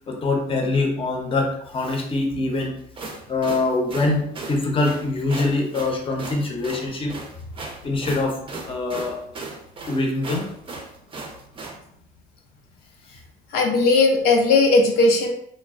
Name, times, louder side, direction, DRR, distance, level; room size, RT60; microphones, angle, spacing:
voice 1, 0.1-2.7 3.3-7.1 7.8-8.4 8.7-9.2 9.9-10.5, left 2 dB, 35° left, 1 dB, 0.7 m, -24 dB
sound 1, 2.8-11.8, right 3 dB, 35° right, 0.5 m, -36 dB
voice 2, 13.5-15.3, left 3 dB, 80° left, 1 dB, 0.5 m, -17 dB
3.0 x 2.2 x 2.4 m, 0.68 s
cardioid pair, 105°, 16 cm